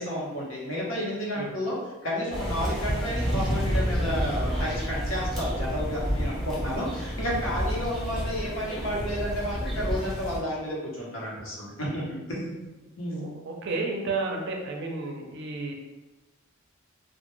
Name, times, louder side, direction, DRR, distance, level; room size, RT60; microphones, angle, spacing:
voice 1, 0.0-1.8 2.0-12.7 13.0-13.3, equal, 80° left, -5 dB, 0.8 m, -31 dB
sound 1, 2.3-10.4, equal, ahead, 0.5 m, -29 dB
voice 2, 13.1-15.7, right 3 dB, 55° right, 1 dB, 0.4 m, -32 dB
2.1 x 2.1 x 3.0 m, 1.1 s
head